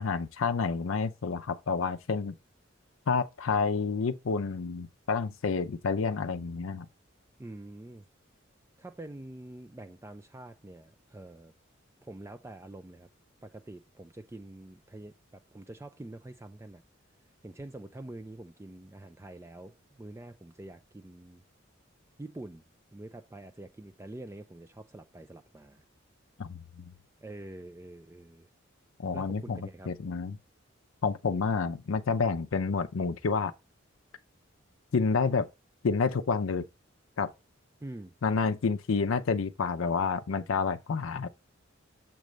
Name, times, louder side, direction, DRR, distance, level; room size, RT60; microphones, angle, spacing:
voice 1, 0.0-2.3 3.1-6.9 26.4-26.9 29.0-29.6 29.9-30.4 31.0-33.5 34.9-35.5 35.8-36.7 37.2-37.3 38.2-41.3, left 5 dB, 85° left, 0.5 m, -29 dB
voice 2, 7.4-8.0 8.8-11.5 12.0-13.1 13.4-16.8 17.4-21.4 22.2-22.6 22.9-25.8 27.2-28.5 29.1-29.9 37.8-38.1, right 1 dB, 15° right, 0.3 m, -46 dB
7.4 x 3.2 x 5.1 m
head